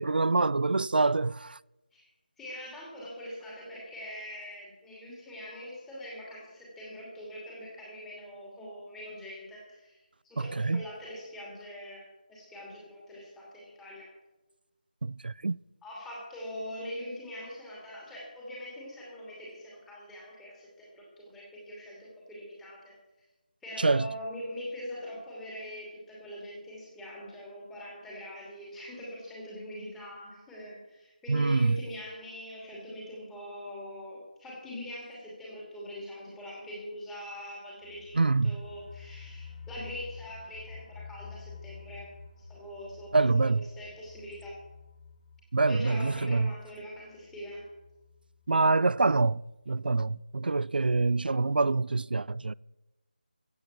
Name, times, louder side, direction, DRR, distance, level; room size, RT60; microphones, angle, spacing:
voice 1, 0.0-1.6 10.4-10.9 15.0-15.6 23.8-24.1 31.3-31.8 38.2-38.6 43.1-43.6 45.5-46.5 48.5-52.5, right 3 dB, 75° right, 0.4 m, -26 dB
voice 2, 2.4-10.0 10.2-12.0 12.3-14.1 15.8-22.9 23.6-38.1 38.4-42.1 42.5-43.5 43.8-44.5 45.6-47.7, equal, 5° left, 2.6 m, -43 dB
sound 1, 37.8-48.5 48.8-48.9 49.3-49.4, left 5 dB, 45° left, 5.1 m, -49 dB
15.5 x 8.0 x 7.3 m
figure-of-eight pair, 170°, 5 cm